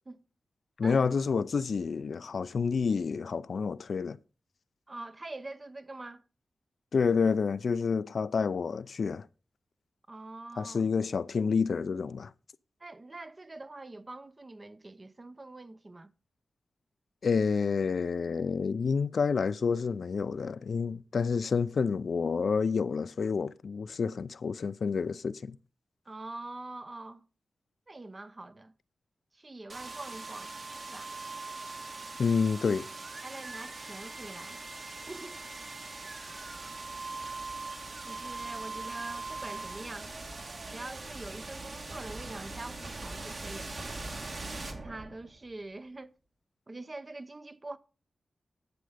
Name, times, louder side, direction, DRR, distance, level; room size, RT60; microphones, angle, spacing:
voice 1, 0.8-4.2 6.9-9.3 10.6-12.3 17.2-25.6 32.2-32.9, left 5 dB, 65° left, 0.5 m, -29 dB
voice 2, 4.9-6.2 10.1-10.8 12.8-16.1 26.1-27.2 27.9-28.7 29.3-30.5 30.9-31.1 33.2-35.4 36.2-36.5 38.0-40.1 40.7-43.8 44.7-46.1 46.7-47.8, right 2 dB, 30° right, 0.7 m, -44 dB
sound 1, 29.7-45.5, right 3 dB, 50° right, 1.9 m, -41 dB
11.5 x 7.7 x 5.0 m
wide cardioid pair, 110°, 0 cm